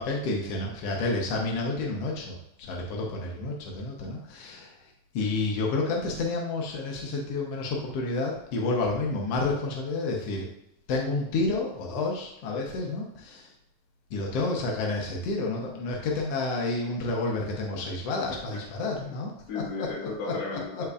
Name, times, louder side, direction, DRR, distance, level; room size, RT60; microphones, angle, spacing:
voice 1, 0.0-4.7 5.1-10.5 10.9-13.5 14.1-19.3 19.8-19.9 20.2-20.3 20.7-20.8, left 3 dB, 70° left, -1 dB, 1.5 m, -30 dB
voice 2, 18.3-18.6 19.0-19.2 19.5-20.9, left 3 dB, 50° left, -2 dB, 2.4 m, -35 dB
13.5 x 4.5 x 2.4 m, 0.82 s
omnidirectional pair, 4.0 m